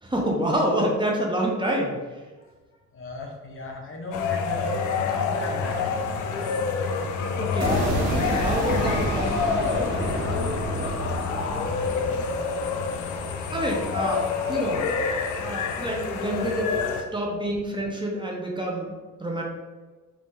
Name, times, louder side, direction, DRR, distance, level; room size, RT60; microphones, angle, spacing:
voice 1, 0.0-2.2 7.4-10.5 10.8-10.9 13.2-14.9 15.3-18.9 19.2-19.4, equal, 15° right, -2 dB, 0.7 m, -28 dB
voice 2, 2.9-4.8 5.1-6.0 11.3-12.2, left 2 dB, 45° left, 0 dB, 0.7 m, -37 dB
sound 1, 4.1-17.0, left 5 dB, 80° left, 0.5 m, -27 dB
sound 2, 7.6-13.6, right 1 dB, 60° right, 1.2 m, -30 dB
3.6 x 2.6 x 3.1 m, 1.3 s
cardioid pair, 90°, 30 cm